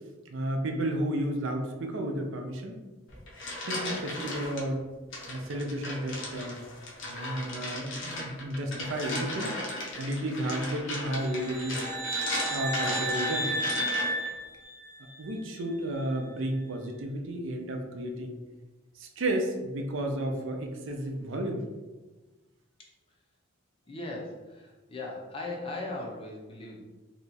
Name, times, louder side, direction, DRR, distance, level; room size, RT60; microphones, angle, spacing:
voice 1, 0.3-2.8 3.7-4.8 5.3-6.6 7.0-9.5 10.0-11.8 12.5-13.5 15.2-18.3 19.0-21.6, right 1 dB, 65° right, 3 dB, 0.5 m, -32 dB
sound 1, 3.1-4.6 5.1-14.3, left 1 dB, 65° left, 0.8 m, -36 dB
sound 2, 11.2-15.3, right 1 dB, 35° right, 0.9 m, -32 dB
voice 2, 23.9-26.8, left 2 dB, 25° left, -2 dB, 0.6 m, -38 dB
2.8 x 2.3 x 4.0 m, 1.2 s
head